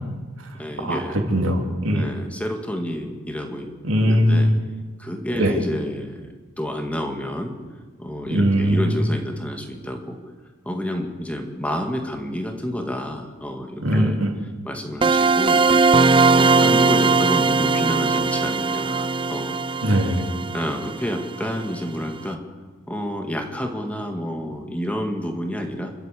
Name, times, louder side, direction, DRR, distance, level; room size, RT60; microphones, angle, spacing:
voice 1, 0.5-1.2 1.9-3.7 4.0-4.5 5.0-7.5 8.0-10.2 10.7-14.2 14.6-19.6 20.5-22.4 22.9-25.9, equal, 5° left, 3 dB, 2.0 m, -29 dB
voice 2, 1.3-2.1 3.8-4.5 5.4-5.6 8.3-9.0 13.8-14.3 19.8-20.3, equal, 65° right, 2 dB, 3.5 m, -20 dB
sound 1, 15.0-21.7, right 4 dB, 25° right, 0.6 m, -19 dB
29.0 x 12.5 x 8.4 m, 1.4 s
head